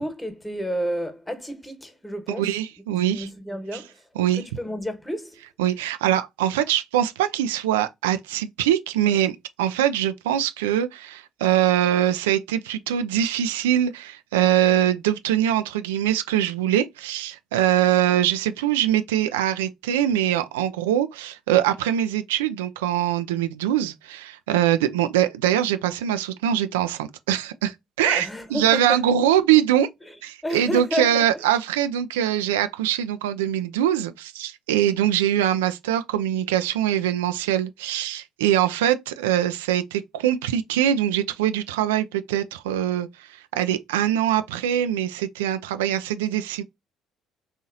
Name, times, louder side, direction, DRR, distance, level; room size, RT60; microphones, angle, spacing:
voice 1, 0.0-2.5 2.9-4.0 4.3-5.4 28.0-29.1 30.1-30.2 30.4-31.4, equal, 10° left, 1.2 m, -31 dB
voice 2, 2.4-3.3 3.7-3.8 4.2-4.4 5.6-29.9 30.2-46.6, right 11 dB, 80° right, 0.3 m, -23 dB
4.0 x 2.8 x 2.6 m
hypercardioid pair, 55°, 0 cm